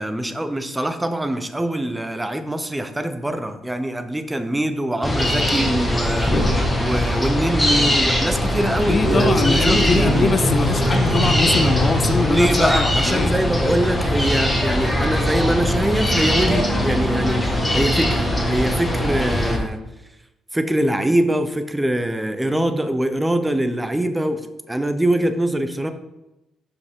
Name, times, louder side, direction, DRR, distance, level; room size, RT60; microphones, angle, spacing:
voice 1, 0.0-6.5 6.8-10.2 12.3-19.8 20.5-25.9, right 1 dB, 10° right, 8 dB, 0.8 m, -23 dB
sound 1, 5.0-19.6, left 1 dB, 15° left, 1.9 m, -21 dB
voice 2, 8.9-13.8, left 4 dB, 40° left, 9 dB, 0.5 m, -23 dB
sound 2, 9.0-12.5, right 1 dB, 30° right, 2.0 m, -22 dB
12.0 x 4.9 x 3.7 m, 0.95 s
cardioid pair, 90°, 0 cm